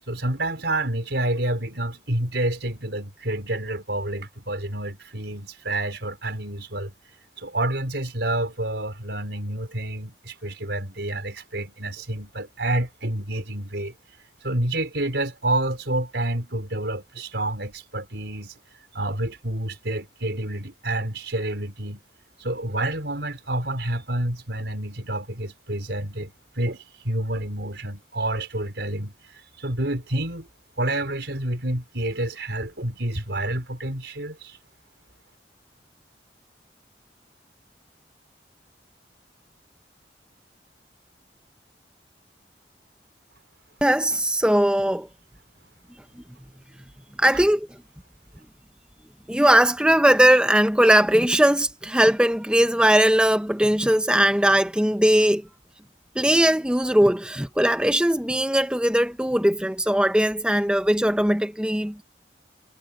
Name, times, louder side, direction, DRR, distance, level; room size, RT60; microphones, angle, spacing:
voice 1, 0.1-6.9 7.4-13.9 14.4-18.5 18.9-22.0 22.4-29.1 29.6-30.5 30.8-34.6, right 1 dB, 75° right, 4.3 m, -28 dB
voice 2, 43.8-45.1 47.2-47.7 49.3-55.4 56.2-62.0, right 1 dB, 5° right, 0.9 m, -19 dB
head